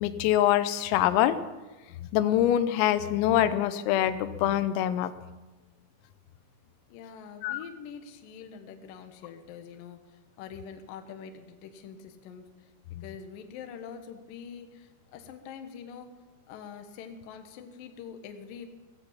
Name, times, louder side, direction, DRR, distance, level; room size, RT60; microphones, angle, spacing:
voice 1, 0.0-1.4 2.1-5.1 7.4-7.6 12.9-13.0, left 12 dB, 90° left, 12 dB, 3.5 m, -24 dB
voice 2, 6.9-12.7 13.0-16.1 16.5-18.7, left 7 dB, 75° left, 6 dB, 2.1 m, -45 dB
15.5 x 15.5 x 5.8 m, 1.2 s
omnidirectional pair, 6.0 m